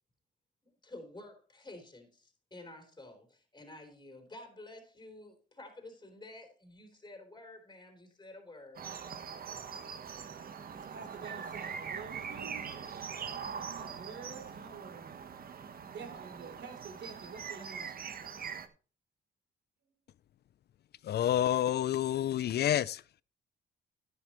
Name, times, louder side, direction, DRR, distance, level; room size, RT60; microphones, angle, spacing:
voice 1, 0.6-8.9, left 2 dB, 20° left, 3.6 m, -51 dB
sound 1, 8.8-18.7, right 6 dB, 50° right, 1.1 m, -42 dB
voice 2, 10.7-13.3 13.5-15.2 15.9-18.2, right 5 dB, 65° right, 3.5 m, -49 dB
voice 3, 21.0-23.2, left 11 dB, 55° left, 0.5 m, -29 dB
11.0 x 11.0 x 3.0 m
cardioid pair, 90°, 20 cm